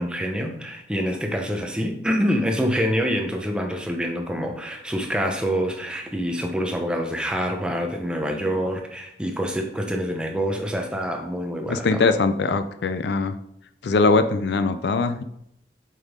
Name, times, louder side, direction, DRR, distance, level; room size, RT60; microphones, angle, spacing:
voice 1, 0.0-12.1, equal, 5° right, 3 dB, 0.7 m, -26 dB
voice 2, 11.7-13.3 13.8-15.2, left 3 dB, 70° left, 10 dB, 0.4 m, -21 dB
7.3 x 5.4 x 3.6 m, 0.77 s
head